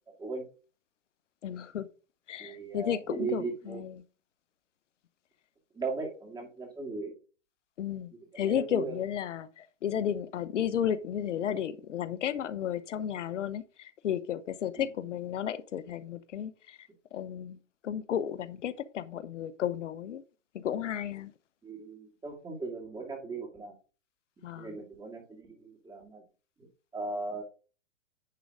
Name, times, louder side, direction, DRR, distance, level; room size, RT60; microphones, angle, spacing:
voice 1, 1.4-1.9 2.3-4.0 7.8-17.6 17.8-20.2 20.5-21.3 24.4-24.8, left 9 dB, 70° left, 1.0 m, -33 dB
voice 2, 2.4-3.8 5.7-7.1 8.3-9.0 14.8-14.9 21.6-23.7 24.6-26.2 26.9-27.4, right 4 dB, 10° right, 2.4 m, -37 dB
10.0 x 3.8 x 4.8 m
hypercardioid pair, 140°, 38 cm